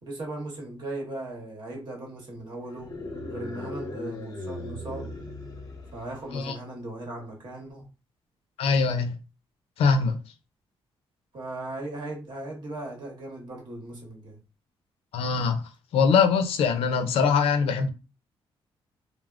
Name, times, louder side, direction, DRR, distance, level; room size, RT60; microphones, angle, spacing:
voice 1, 0.0-2.9 3.3-5.1 5.9-7.9 11.3-14.4, right 2 dB, 50° right, 1.1 m, -38 dB
sound 1, 2.7-6.4, left 1 dB, 40° left, 0.7 m, -38 dB
voice 2, 8.6-9.1 9.8-10.2 15.1-15.6 15.9-17.9, left 5 dB, 80° left, 0.5 m, -22 dB
3.3 x 2.0 x 2.4 m
wide cardioid pair, 165°, 10 cm